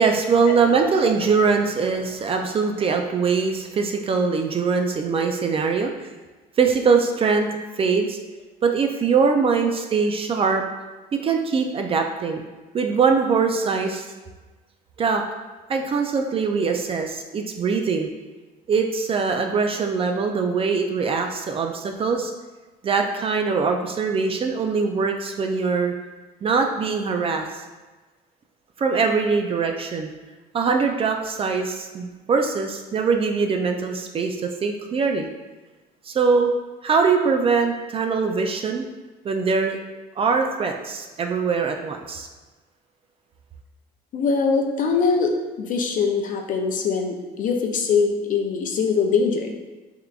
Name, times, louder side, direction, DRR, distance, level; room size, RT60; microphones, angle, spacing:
voice 1, 0.0-6.1 6.6-7.5 7.8-8.2 8.6-10.6 11.2-12.4 12.7-14.0 15.0-15.2 15.7-18.1 18.7-22.3 22.8-25.9 26.4-27.6 28.8-30.1 30.5-35.3 36.1-36.5 36.8-38.8 39.2-39.8 40.2-42.3, right 5 dB, 35° right, 4 dB, 0.4 m, -22 dB
voice 2, 44.1-49.5, left 5 dB, 50° left, 3 dB, 0.5 m, -22 dB
3.7 x 3.3 x 2.3 m, 1.2 s
cardioid pair, 110°, 17 cm